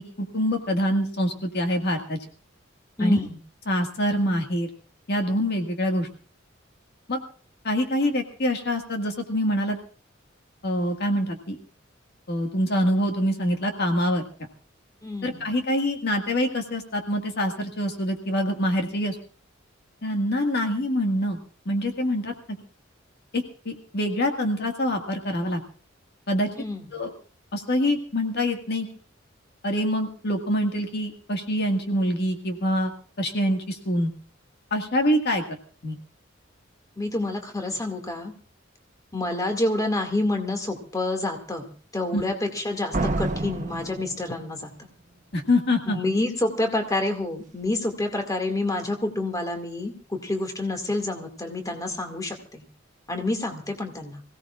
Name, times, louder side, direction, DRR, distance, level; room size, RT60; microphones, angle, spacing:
voice 1, 0.0-2.2 3.0-3.2 3.7-4.7 5.1-6.1 7.1-7.2 7.6-9.8 10.6-11.6 12.3-14.2 15.2-19.2 20.0-21.4 21.7-22.6 23.3-25.6 26.3-26.5 26.9-27.1 27.5-28.9 29.6-32.9 33.2-34.1 34.7-36.0 42.1-42.2 45.3-46.0, equal, 55° left, 3 dB, 1.9 m, -25 dB
voice 2, 3.0-3.4 15.0-15.5 26.6-26.8 37.0-38.3 39.1-44.7 45.9-52.6 53.1-54.2, left 2 dB, 20° left, 5 dB, 2.2 m, -28 dB
Slam, 42.9-44.8, right 2 dB, 40° right, 1.0 m, -29 dB
26.0 x 17.0 x 2.5 m, 0.40 s
head